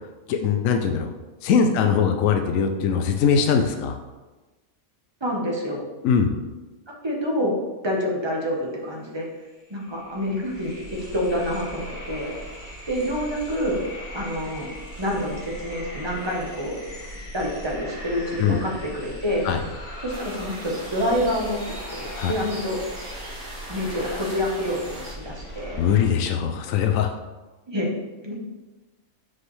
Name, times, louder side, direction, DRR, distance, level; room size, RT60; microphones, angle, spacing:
voice 1, 0.3-1.1 1.4-4.0 6.0-6.3 18.4-18.6 19.4-19.6 22.1-22.3 25.8-27.1, left 7 dB, 75° left, 5 dB, 0.9 m, -21 dB
voice 2, 5.2-5.8 6.9-7.6 7.8-9.3 9.7-12.4 12.9-13.8 14.1-14.7 15.0-16.8 17.3-19.5 20.0-21.6 21.9-22.8 23.7-25.8 27.7-27.9 28.2-28.3, equal, 20° right, -2 dB, 0.9 m, -27 dB
sound 1, 9.1-9.2 9.4-26.1, equal, 40° left, 2.0 m, -39 dB
sound 2, 20.1-25.1, right 1 dB, 70° right, 2.4 m, -40 dB
6.0 x 4.9 x 3.1 m, 1.2 s
omnidirectional pair, 1.5 m